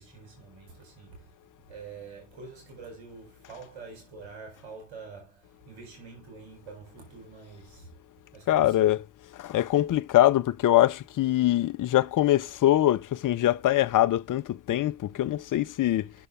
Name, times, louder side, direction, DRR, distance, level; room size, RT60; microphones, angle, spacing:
voice 1, 0.0-1.4 1.7-7.9 8.3-9.0 15.1-15.2, right 4 dB, 70° right, 4.7 m, -46 dB
voice 2, 8.5-9.0 9.3-16.1, left 13 dB, 40° left, 0.6 m, -23 dB
7.9 x 6.7 x 3.6 m
hypercardioid pair, 45°, 47 cm